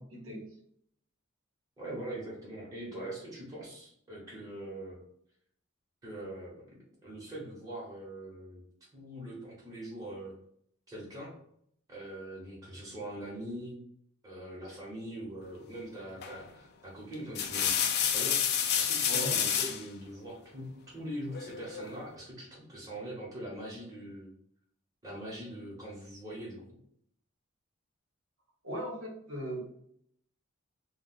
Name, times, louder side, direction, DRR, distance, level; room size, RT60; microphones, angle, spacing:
voice 1, 0.1-0.5 19.1-19.4 28.6-29.7, right 1 dB, 90° right, -2 dB, 1.1 m, -38 dB
voice 2, 1.8-5.0 6.0-6.6 7.0-8.6 8.9-10.3 10.9-11.4 11.9-13.8 14.2-17.8 18.1-24.3 25.0-26.8, right 1 dB, 20° right, -6 dB, 1.0 m, -42 dB
sound 1, 16.2-16.5 17.1-19.8 21.3-22.0, left 8 dB, 55° left, 0.4 m, -29 dB
2.5 x 2.3 x 3.9 m, 0.69 s
head